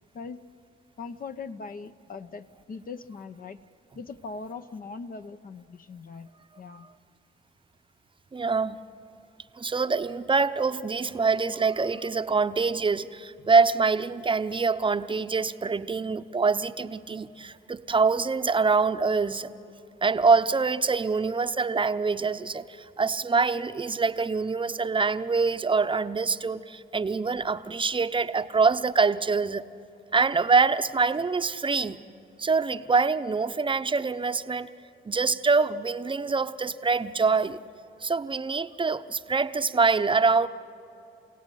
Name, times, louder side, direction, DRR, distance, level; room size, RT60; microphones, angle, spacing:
voice 1, 1.0-3.6 3.9-6.3 6.6-6.9 13.4-13.5, left 4 dB, 45° left, 9 dB, 0.8 m, -40 dB
voice 2, 8.3-8.8 9.6-19.5 20.0-29.7 30.1-32.0 32.4-34.7 35.0-37.6 38.0-40.5, right 4 dB, 25° right, 10 dB, 0.8 m, -25 dB
28.0 x 17.0 x 10.0 m, 2.9 s
cardioid pair, 90°, 20 cm